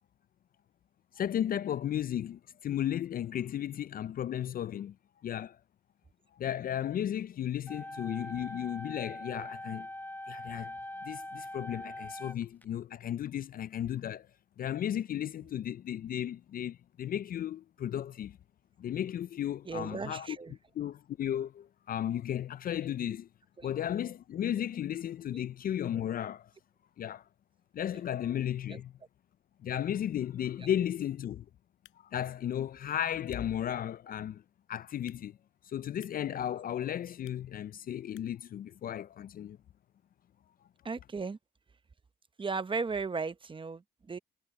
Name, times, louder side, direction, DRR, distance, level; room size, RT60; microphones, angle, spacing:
voice 1, 1.1-5.0 5.2-5.6 6.3-9.9 10.3-10.8 11.0-14.3 14.6-18.4 18.8-20.4 20.8-23.3 23.6-26.5 27.0-27.2 27.7-28.9 29.6-31.5 32.0-34.4 34.7-35.4 35.6-39.6, left 10 dB, 45° left, 0.4 m, -34 dB
sound 1, 7.7-12.6, left 1 dB, 10° left, 0.8 m, -42 dB
voice 2, 19.7-20.6 23.6-23.7 25.3-25.4 28.7-28.8 30.6-30.7 40.8-41.4 42.4-44.2, right 4 dB, 25° right, 0.9 m, -36 dB
sound 2, 31.7-38.5, left 15 dB, 90° left, 5.1 m, -67 dB
cardioid pair, 90°, 20 cm